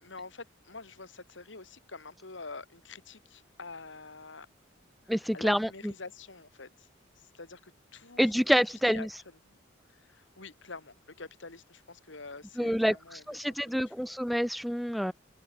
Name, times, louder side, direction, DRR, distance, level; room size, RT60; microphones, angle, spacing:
voice 1, 0.0-4.5 5.0-6.9 7.3-9.6 9.9-13.9, left 3 dB, 75° left, 2.5 m, -47 dB
voice 2, 5.1-5.9 8.2-9.1 12.6-13.0 13.3-15.1, equal, ahead, 0.5 m, -27 dB
open air
head